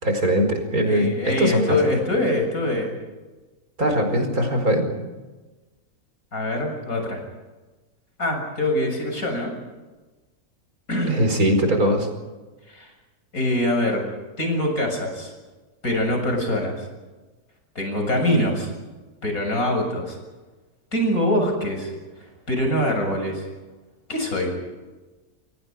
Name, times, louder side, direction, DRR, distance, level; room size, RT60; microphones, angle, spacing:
voice 1, 0.0-1.8 3.8-4.9 11.1-12.1, equal, 80° right, 5 dB, 5.4 m, -21 dB
voice 2, 0.9-2.9 6.3-7.2 8.2-9.5 10.9-11.4 12.7-12.9 13.3-14.0 14.4-15.3 15.8-16.9 17.8-18.7 19.2-20.2 20.9-21.9 22.5-23.4 24.1-24.5, left 1 dB, 75° left, 3 dB, 7.5 m, -24 dB
28.5 x 24.0 x 5.3 m, 1.2 s
omnidirectional pair, 1.5 m